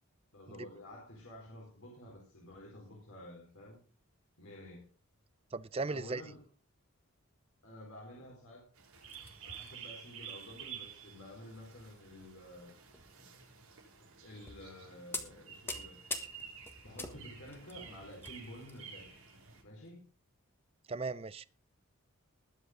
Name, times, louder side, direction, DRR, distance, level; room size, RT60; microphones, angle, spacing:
voice 1, 0.3-3.8 4.4-4.9 5.9-6.4 7.6-8.7 9.4-12.7 14.0-16.0 16.8-19.2 19.6-20.0, left 1 dB, 75° left, 4.5 m, -51 dB
voice 2, 5.5-6.2 20.9-21.5, right 3 dB, 25° right, 0.5 m, -36 dB
sound 1, 8.7-19.6, right 7 dB, 85° right, 6.0 m, -51 dB
sound 2, 9.0-9.7 10.2-10.3 10.7-10.9 11.9-12.3 12.8-13.1 13.9-14.0 14.5-14.7 15.1-18.8 19.1-19.3 19.8-19.9, left 2 dB, 10° left, 1.5 m, -44 dB
20.5 x 8.1 x 3.8 m
head